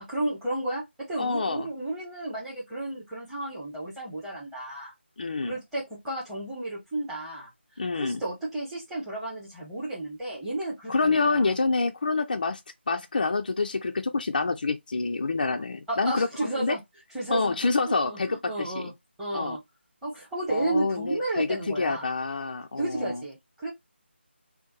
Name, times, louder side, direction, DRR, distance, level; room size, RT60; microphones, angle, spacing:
voice 1, 0.1-4.9 5.5-7.5 7.9-11.5 15.9-16.8 17.1-17.5 17.8-18.9 19.2-19.6 20.0-22.1 22.8-23.7, right 2 dB, 5° right, 0.9 m, -32 dB
voice 2, 1.2-1.7 5.2-5.5 7.8-8.2 10.9-12.6 12.9-16.8 17.3-18.9 19.3-19.6 20.5-23.2, left 3 dB, 45° left, 0.3 m, -27 dB
2.7 x 2.2 x 2.7 m
figure-of-eight pair, 160°, 6 cm